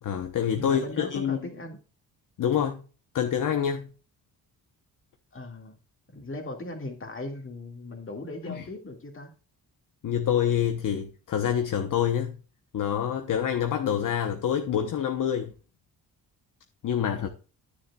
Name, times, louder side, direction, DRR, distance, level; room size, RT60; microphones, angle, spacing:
voice 1, 0.0-1.4 2.4-2.8 3.1-3.9 8.5-8.6 10.0-12.4 12.7-15.5 16.8-17.3, left 9 dB, 50° left, 1.0 m, -26 dB
voice 2, 0.5-1.8 5.3-5.8 6.1-9.3 17.2-17.3, left 2 dB, 30° left, 2.1 m, -38 dB
9.8 x 9.7 x 2.4 m
cardioid pair, 115°, 40 cm